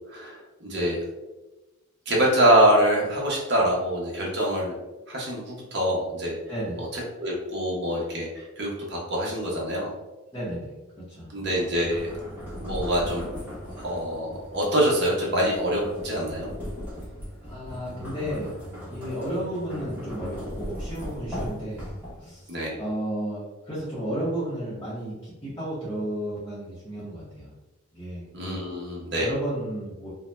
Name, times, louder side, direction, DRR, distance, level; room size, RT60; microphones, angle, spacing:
voice 1, 0.1-1.0 2.1-4.7 5.1-6.4 6.8-9.9 11.3-12.1 12.6-13.2 13.8-16.5 22.5-22.8 28.3-29.3, right 1 dB, 55° right, -3 dB, 0.8 m, -25 dB
voice 2, 6.5-6.8 10.3-10.7 11.1-11.3 17.4-18.6 18.9-21.9 22.2-22.5 22.8-27.5 27.9-28.3 29.2-30.1, right 1 dB, 20° left, -10 dB, 0.7 m, -32 dB
sound 1, 11.4-22.4, equal, 10° right, 1.0 m, -38 dB
2.6 x 2.1 x 3.2 m, 1.1 s
head